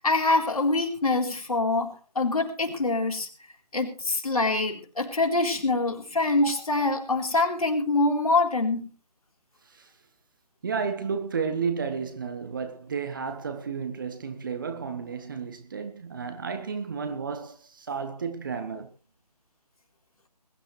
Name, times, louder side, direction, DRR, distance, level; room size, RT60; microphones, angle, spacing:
voice 1, 0.0-3.3 3.7-8.9, left 2 dB, 60° left, 4.0 m, -25 dB
voice 2, 10.6-18.9, right 5 dB, 30° right, 1.4 m, -32 dB
21.5 x 13.0 x 3.3 m
figure-of-eight pair, 155°, 21 cm